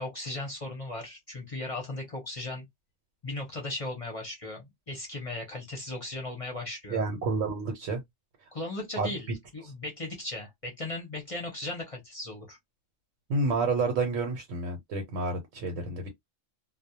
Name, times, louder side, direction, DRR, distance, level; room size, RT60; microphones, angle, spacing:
voice 1, 0.0-2.6 3.2-7.0 8.5-12.6, left 2 dB, 35° left, 0.6 m, -37 dB
voice 2, 6.9-8.0 9.0-9.1 13.3-16.1, right 3 dB, 85° right, 1.1 m, -29 dB
2.3 x 2.1 x 2.7 m
omnidirectional pair, 1.3 m